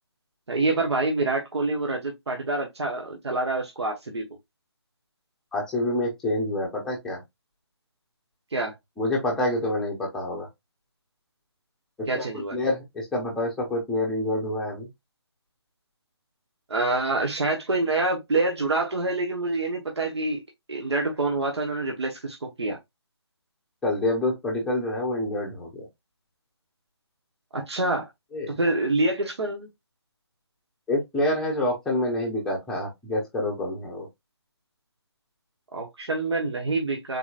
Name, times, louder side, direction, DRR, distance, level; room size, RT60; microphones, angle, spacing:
voice 1, 0.5-4.2 8.5-8.7 12.1-12.6 16.7-20.4 20.7-22.8 27.5-28.1 28.5-29.7 35.7-37.2, right 2 dB, 70° right, 1.0 m, -26 dB
voice 2, 5.5-7.2 9.0-10.5 12.1-12.2 12.5-14.9 23.8-25.8 28.3-28.5 30.9-34.1, left 1 dB, 5° left, 0.7 m, -27 dB
3.9 x 2.9 x 2.4 m
figure-of-eight pair, 155°, 14 cm